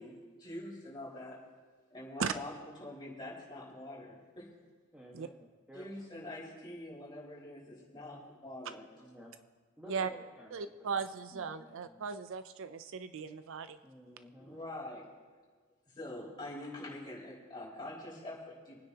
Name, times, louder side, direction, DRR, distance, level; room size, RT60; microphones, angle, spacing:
voice 1, 0.0-1.4 1.9-4.5 5.7-8.8 11.3-11.4 14.4-15.1 16.0-18.8, left 1 dB, 20° left, -6 dB, 5.0 m, -45 dB
voice 2, 4.9-5.3 5.7-5.9 7.9-8.2 9.0-9.3 9.8-11.0 11.6-12.0 13.8-14.6, equal, 5° right, -5 dB, 1.5 m, -54 dB
voice 3, 10.5-13.8, right 6 dB, 65° right, 11 dB, 0.5 m, -37 dB
28.5 x 9.9 x 2.9 m, 1.5 s
head